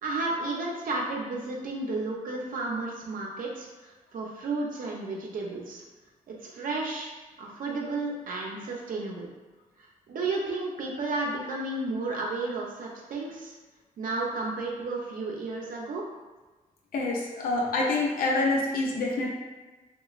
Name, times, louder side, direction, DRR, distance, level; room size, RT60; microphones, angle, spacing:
voice 1, 0.0-5.8 6.3-7.1 7.4-9.3 9.8-13.6 14.0-16.0, right 3 dB, 70° right, -2 dB, 0.5 m, -32 dB
voice 2, 16.9-19.3, left 2 dB, 80° left, -2 dB, 0.5 m, -26 dB
3.0 x 2.2 x 2.3 m, 1.2 s
cardioid pair, 100°, 15 cm